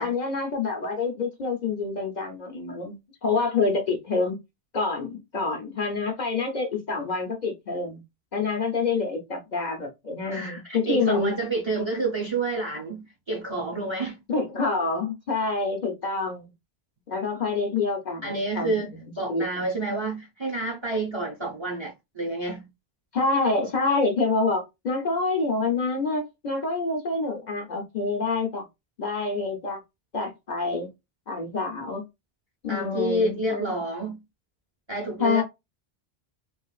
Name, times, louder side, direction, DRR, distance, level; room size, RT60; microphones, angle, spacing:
voice 1, 0.0-4.4 4.7-8.0 8.3-11.3 14.3-16.5 17.1-19.0 19.3-19.5 23.1-28.6 29.0-29.8 30.1-30.9 31.3-32.0 32.6-33.7 35.2-35.4, left 3 dB, 50° left, 0.7 m, -27 dB
voice 2, 10.3-14.2 18.2-22.7 32.7-34.2 34.9-35.4, right 2 dB, 30° right, 0.6 m, -29 dB
3.1 x 2.4 x 2.3 m
omnidirectional pair, 1.0 m